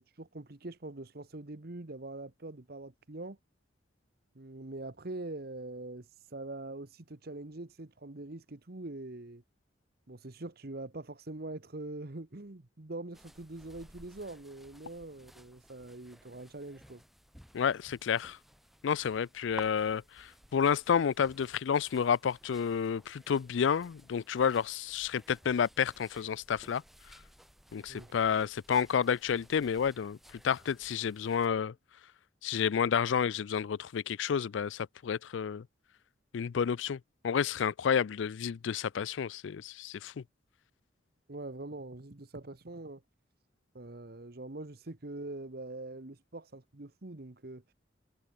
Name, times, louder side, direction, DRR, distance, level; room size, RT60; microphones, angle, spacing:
voice 1, 0.0-3.4 4.3-9.4 10.1-17.0 27.9-28.2 41.3-43.0 43.7-47.7, right 2 dB, 55° right, 1.2 m, -43 dB
sound 1, 13.1-31.5, equal, ahead, 2.8 m, -56 dB
voice 2, 17.5-18.4 18.8-26.8 27.7-31.7 32.4-35.7 36.3-40.2, left 7 dB, 75° left, 0.4 m, -30 dB
head